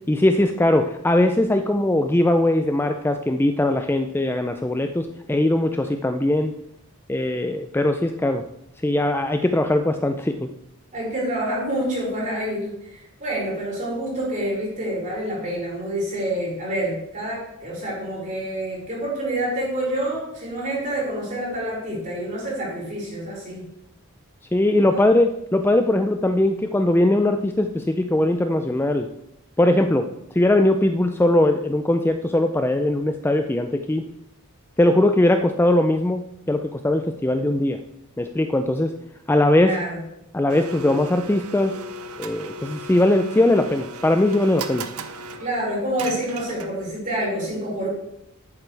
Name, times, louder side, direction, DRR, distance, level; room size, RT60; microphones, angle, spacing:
voice 1, 0.1-6.5 7.1-8.4 8.8-10.5 24.5-29.1 29.6-30.1 30.3-34.0 34.8-36.2 36.5-37.8 38.2-38.9 39.3-39.8 40.3-41.7 42.2-44.8, left 1 dB, 10° left, 7 dB, 0.3 m, -20 dB
voice 2, 10.9-23.6 24.8-25.1 39.5-40.0 45.4-47.9, right 1 dB, 35° right, -5 dB, 4.4 m, -27 dB
Domestic sounds home sounds, 40.5-47.0, right 2 dB, 80° right, 0.7 m, -37 dB
11.0 x 9.1 x 3.3 m, 0.81 s
head